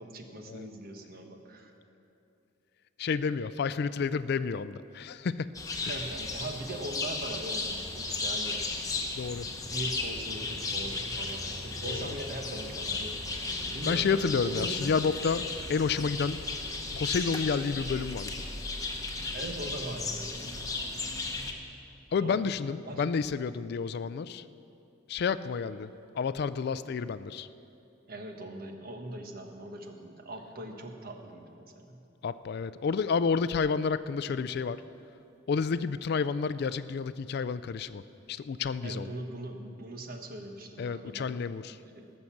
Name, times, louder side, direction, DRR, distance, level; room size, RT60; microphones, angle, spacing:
voice 1, 0.0-1.7 5.9-8.6 9.4-13.3 13.6-14.1 14.4-15.0 19.3-20.4 22.2-22.5 22.8-23.0 28.1-32.0 38.8-41.4 41.6-42.1, right 1 dB, 50° right, 4 dB, 1.2 m, -40 dB
voice 2, 3.0-5.5 5.8-5.9 9.2-9.5 11.8-12.1 13.8-16.4 16.9-18.3 22.1-24.4 25.1-27.5 32.2-34.8 35.5-38.0 38.3-39.1 40.8-41.8, left 5 dB, 55° left, 15 dB, 0.4 m, -30 dB
sound 1, 5.5-21.5, left 3 dB, 20° left, 1.1 m, -35 dB
18.5 x 6.6 x 7.2 m, 2.7 s
head